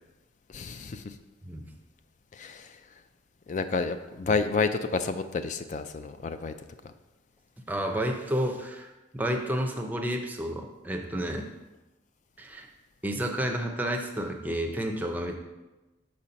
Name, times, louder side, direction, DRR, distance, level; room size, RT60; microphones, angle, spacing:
voice 1, 0.5-1.2 2.3-2.8 3.5-6.5, left 4 dB, 40° left, 10 dB, 0.3 m, -30 dB
voice 2, 7.7-11.5 12.4-12.7 13.0-15.4, right 1 dB, 10° right, 3 dB, 0.6 m, -31 dB
6.2 x 4.2 x 5.1 m, 1.1 s
head